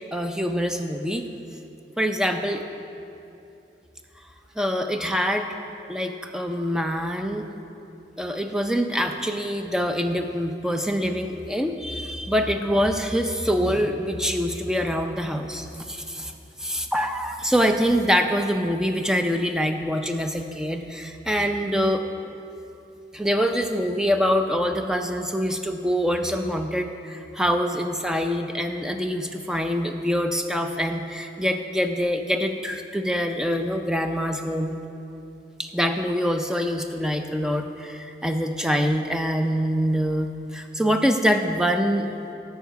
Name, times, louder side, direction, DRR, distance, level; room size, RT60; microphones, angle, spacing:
voice 1, 0.1-1.3 2.0-2.6 4.6-5.5 5.9-7.5 8.2-16.3 16.6-22.0 23.1-34.7 35.6-42.1, equal, 5° right, 5 dB, 0.4 m, -25 dB
9.4 x 5.6 x 7.9 m, 2.8 s
head